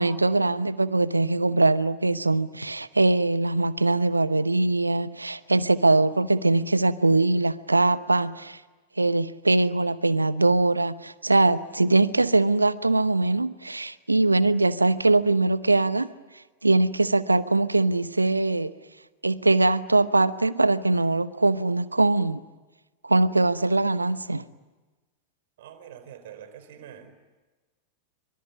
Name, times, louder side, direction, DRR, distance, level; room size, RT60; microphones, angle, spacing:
voice 1, 0.0-8.6 9.0-16.1 16.6-18.7 19.2-22.4 23.0-24.4, right 2 dB, 80° right, 0.9 m, -22 dB
voice 2, 25.6-27.1, right 9 dB, 55° right, 4.3 m, -45 dB
25.0 x 24.5 x 9.7 m
figure-of-eight pair, 90°, 0 cm